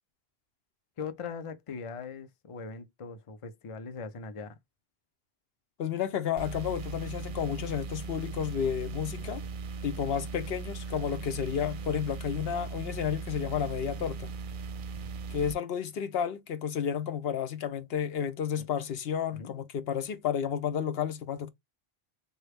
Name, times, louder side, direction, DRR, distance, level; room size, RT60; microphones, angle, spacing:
voice 1, 1.0-4.6 19.3-19.5, left 5 dB, 40° left, 0.5 m, -40 dB
voice 2, 5.8-9.4 9.8-14.3 15.3-21.5, left 8 dB, 75° left, 0.9 m, -31 dB
sound 1, 6.4-15.5, right 4 dB, 60° right, 0.6 m, -38 dB
3.3 x 2.2 x 3.4 m
omnidirectional pair, 1.0 m